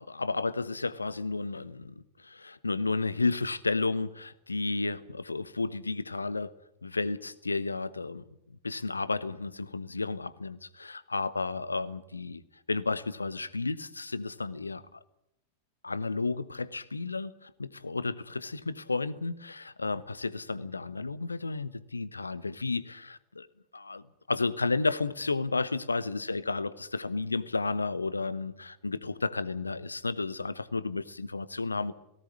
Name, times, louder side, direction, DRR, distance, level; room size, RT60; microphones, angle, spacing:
voice 1, 0.0-6.5 6.8-8.2 8.6-12.4 12.7-15.0 15.8-23.5 23.7-31.9, left 3 dB, 80° left, 17 dB, 0.9 m, -32 dB
18.5 x 17.0 x 9.9 m, 0.82 s
figure-of-eight pair, 90°, 0 cm